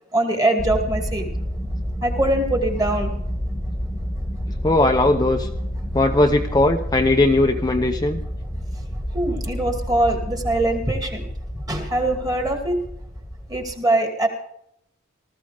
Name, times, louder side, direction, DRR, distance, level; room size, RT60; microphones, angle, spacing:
voice 1, 0.1-1.2 2.0-3.1 9.1-11.2 11.7-12.8 13.5-14.3, right 1 dB, 15° right, 3 dB, 2.4 m, -22 dB
sound 1, 0.6-13.7, equal, ahead, 1.7 m, -29 dB
voice 2, 4.6-5.5 5.9-8.2, left 2 dB, 15° left, 4 dB, 0.7 m, -18 dB
19.5 x 14.0 x 3.5 m, 0.73 s
head